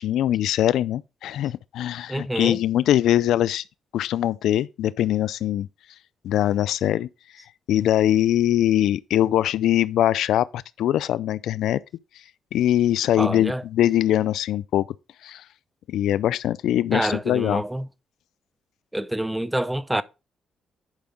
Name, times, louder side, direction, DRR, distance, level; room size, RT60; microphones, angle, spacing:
voice 1, 0.0-3.6 3.9-5.7 6.2-7.1 7.7-11.8 12.5-14.8 15.2-15.4 15.9-17.6, left 12 dB, 80° left, 0.3 m, -22 dB
voice 2, 2.1-2.6 13.2-13.6 16.9-17.9 18.9-20.0, right 1 dB, 5° right, 0.6 m, -27 dB
10.5 x 5.2 x 3.6 m
cardioid pair, 90°, 0 cm